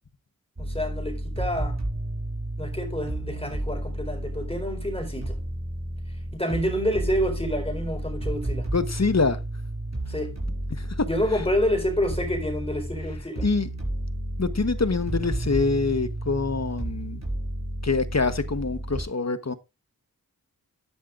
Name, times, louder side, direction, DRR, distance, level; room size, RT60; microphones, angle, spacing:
voice 1, 0.6-1.8 2.6-5.4 6.3-8.7 10.1-10.4 11.1-13.5, equal, 15° left, 4.2 m, -28 dB
sound 1, 0.6-19.0, right 1 dB, 45° right, 5.0 m, -32 dB
voice 2, 8.7-9.4 10.7-11.1 13.4-13.7 14.4-17.2 17.8-19.5, left 4 dB, 45° left, 1.2 m, -25 dB
12.0 x 11.0 x 2.5 m
wide cardioid pair, 40°, 36 cm